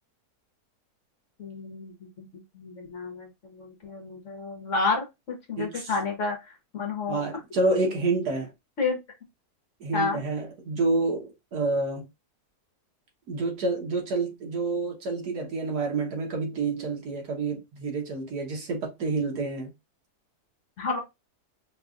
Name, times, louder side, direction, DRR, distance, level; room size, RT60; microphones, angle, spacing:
voice 1, 1.4-7.2 8.8-9.0 9.9-10.2 20.8-21.0, left 4 dB, 55° left, 1.2 m, -31 dB
voice 2, 5.6-5.9 7.1-8.5 9.8-12.1 13.3-19.7, right 3 dB, 70° right, 1.7 m, -28 dB
4.7 x 2.3 x 2.5 m
omnidirectional pair, 1.7 m